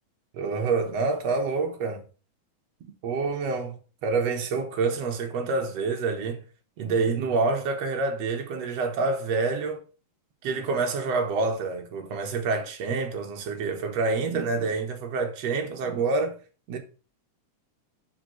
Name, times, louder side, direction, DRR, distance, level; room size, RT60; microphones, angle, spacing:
voice 1, 0.3-2.0 3.0-6.4 6.8-9.8 10.4-16.4 16.7-16.8, right 4 dB, 65° right, 2.1 m, -27 dB
5.1 x 5.1 x 6.3 m
omnidirectional pair, 3.5 m